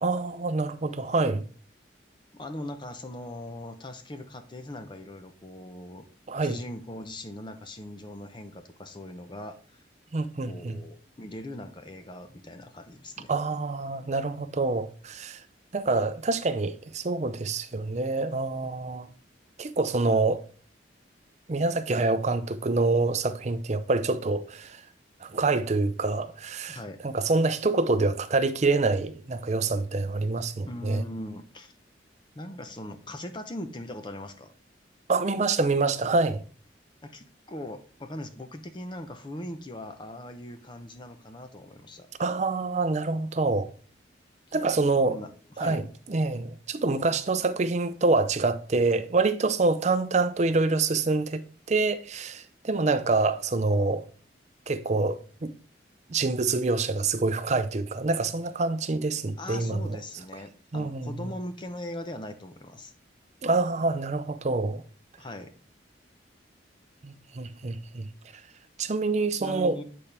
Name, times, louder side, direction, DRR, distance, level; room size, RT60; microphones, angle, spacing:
voice 1, 0.0-1.4 6.3-6.6 10.1-10.8 13.3-15.4 15.7-19.1 19.6-20.4 21.5-24.8 25.2-26.8 27.0-31.0 35.1-36.4 42.2-43.7 44.5-45.2 45.6-45.8 46.1-51.4 51.7-54.0 54.7-55.5 56.1-60.0 60.7-61.3 63.4-64.8 67.0-68.1 68.8-69.8, right 3 dB, 40° right, 0.5 m, -26 dB
voice 2, 2.3-6.0 6.4-9.6 10.4-13.3 26.7-27.0 30.6-31.7 32.3-34.5 37.0-42.1 44.5-44.7 45.0-45.8 59.4-62.9 65.2-65.5 69.3-69.8, left 1 dB, 25° left, 0.7 m, -40 dB
8.5 x 4.3 x 3.4 m
head